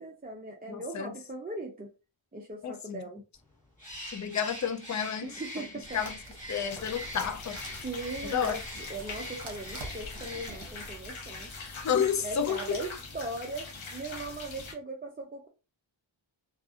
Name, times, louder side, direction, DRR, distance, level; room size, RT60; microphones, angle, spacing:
voice 1, 0.0-1.9 2.3-3.2 5.2-6.0 7.8-11.5 12.2-15.5, right 2 dB, 20° right, 0.4 m, -39 dB
voice 2, 0.7-1.1 2.6-3.0 4.1-5.4 5.9-6.2 6.5-7.6 8.3-8.6 11.7-12.8, left 7 dB, 40° left, 0.4 m, -31 dB
Bird, 3.8-10.8, equal, 15° left, 1.4 m, -44 dB
sound 1, 5.8-10.9, right 1 dB, 55° right, 0.8 m, -46 dB
sound 2, 6.7-14.7, left 3 dB, 70° left, 0.7 m, -43 dB
2.5 x 2.4 x 2.4 m
wide cardioid pair, 50°, 49 cm